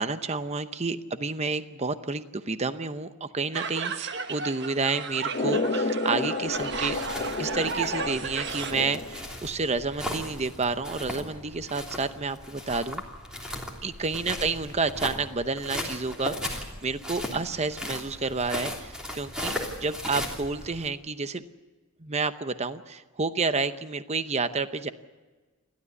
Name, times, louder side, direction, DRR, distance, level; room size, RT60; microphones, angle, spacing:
voice 1, 0.0-7.0 7.4-13.0 13.8-21.4 22.0-24.9, right 4 dB, 30° right, 11 dB, 0.8 m, -30 dB
sound 1, 3.5-8.7, right 5 dB, 55° right, 1.3 m, -34 dB
sound 2, 5.3-9.4, left 2 dB, 40° left, 0.9 m, -30 dB
sound 3, 6.5-20.9, left 1 dB, 5° right, 3.2 m, -37 dB
29.5 x 12.5 x 8.3 m, 1.3 s
head